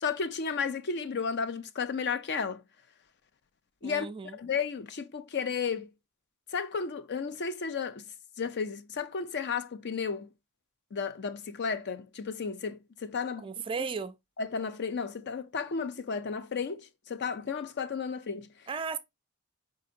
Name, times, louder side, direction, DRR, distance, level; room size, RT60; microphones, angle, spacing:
voice 1, 0.0-2.6 3.8-4.1 4.3-5.9 6.5-8.0 8.4-10.3 10.9-13.5 14.4-18.5, left 5 dB, 50° left, 0.5 m, -33 dB
voice 2, 3.8-4.4 13.4-14.2 18.7-19.0, right 5 dB, 25° right, 0.3 m, -35 dB
4.7 x 3.8 x 2.5 m
head